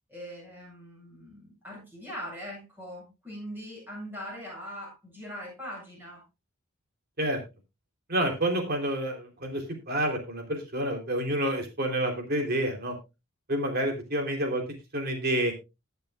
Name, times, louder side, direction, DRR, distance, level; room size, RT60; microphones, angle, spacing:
voice 1, 0.1-6.2, equal, 10° right, -3 dB, 7.4 m, -41 dB
voice 2, 8.1-12.9 13.5-14.6 14.9-15.5, right 1 dB, 45° right, 3 dB, 3.2 m, -28 dB
20.5 x 6.9 x 2.4 m, 0.25 s
head